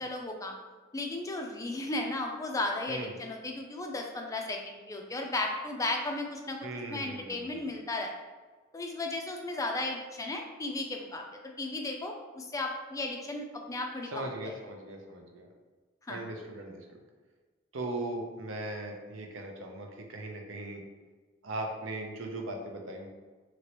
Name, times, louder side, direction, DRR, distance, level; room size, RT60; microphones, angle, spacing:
voice 1, 0.0-0.5 0.9-8.1 8.7-11.2 11.6-14.1 16.1-16.2, left 2 dB, 15° left, 2 dB, 0.3 m, -35 dB
voice 2, 6.6-7.7 14.1-15.5 16.1-17.0 17.7-20.8 21.4-23.1, right 2 dB, 80° right, 2 dB, 0.6 m, -39 dB
2.9 x 2.9 x 2.9 m, 1.4 s
head